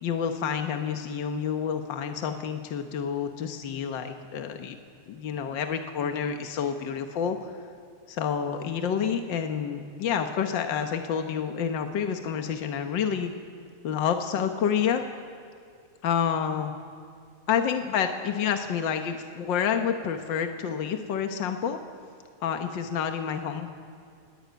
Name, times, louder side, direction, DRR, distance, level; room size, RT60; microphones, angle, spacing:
voice 1, 0.0-4.8 5.1-7.4 8.1-13.3 13.8-15.0 16.0-16.7 17.5-21.8 22.4-23.7, left 7 dB, 65° left, 6 dB, 1.2 m, -28 dB
28.0 x 17.0 x 9.3 m, 2.2 s
omnidirectional pair, 3.4 m